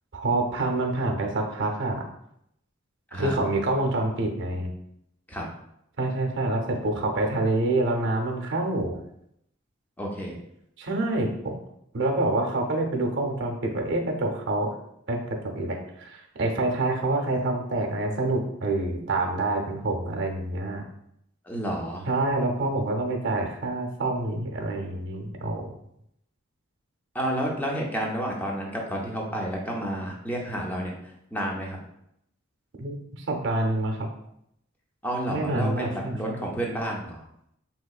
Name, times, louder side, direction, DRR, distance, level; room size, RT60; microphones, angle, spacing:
voice 1, 0.1-2.0 3.1-4.7 6.0-9.0 10.8-11.5 11.9-14.7 15.1-20.8 22.1-25.7 32.8-34.1 35.3-36.4, right 2 dB, 60° right, 2 dB, 0.6 m, -27 dB
voice 2, 10.0-10.4 21.5-22.1 27.1-31.8 35.0-37.2, equal, 10° left, -1 dB, 0.5 m, -30 dB
3.5 x 2.9 x 2.3 m, 0.76 s
head